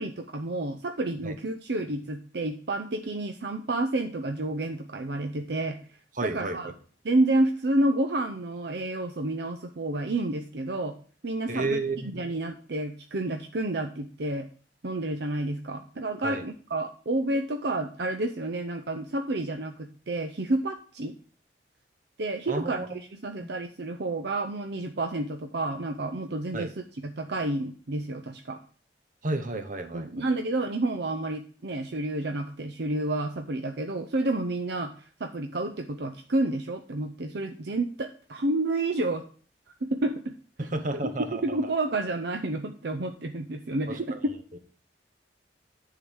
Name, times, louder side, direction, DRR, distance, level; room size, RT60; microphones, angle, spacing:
voice 1, 0.0-5.8 6.2-6.7 7.0-10.9 11.2-11.7 12.0-14.5 14.8-21.1 22.2-28.6 29.9-34.9 35.2-39.2 39.8-40.3 41.0-44.3, right 2 dB, 65° right, 6 dB, 0.7 m, -30 dB
voice 2, 6.2-6.6 11.5-12.2 16.2-16.4 22.5-22.9 23.4-23.5 26.5-26.7 29.2-30.1 40.6-41.6 43.9-44.2, right 2 dB, 50° right, 8 dB, 1.1 m, -31 dB
10.0 x 3.9 x 6.3 m, 0.42 s
head